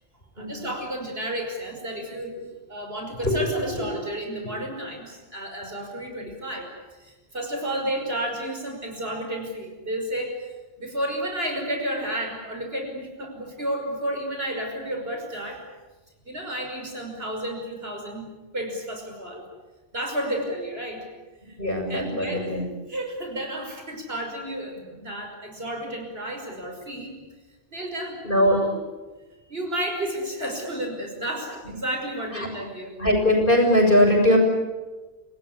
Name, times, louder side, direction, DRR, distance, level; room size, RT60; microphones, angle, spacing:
voice 1, 0.4-2.4 2.7-6.7 7.0-10.4 10.8-15.6 16.2-18.2 18.5-19.4 19.9-21.1 21.9-22.5 22.9-27.2 27.7-28.7 29.5-32.9, right 1 dB, 75° right, 2 dB, 6.2 m, -31 dB
voice 2, 21.6-22.6 28.2-28.6 31.6-31.7 32.3-32.5 33.0-34.4, left 1 dB, 60° left, 2 dB, 7.1 m, -20 dB
28.5 x 19.0 x 10.0 m, 1.2 s
omnidirectional pair, 1.0 m